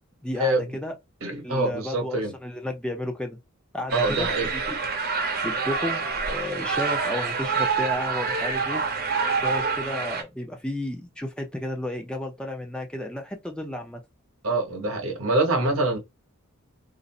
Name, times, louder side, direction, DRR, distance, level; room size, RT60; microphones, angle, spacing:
voice 1, 0.2-0.9 1.4-3.4 3.7-4.8 5.4-8.8 9.4-14.0, left 1 dB, 5° left, 0.5 m, -33 dB
voice 2, 1.2-2.3 3.9-4.5 14.4-16.0, right 2 dB, 70° right, 1.0 m, -25 dB
sound 1, 3.9-10.2, right 5 dB, 50° right, 0.8 m, -27 dB
2.5 x 2.5 x 4.1 m
head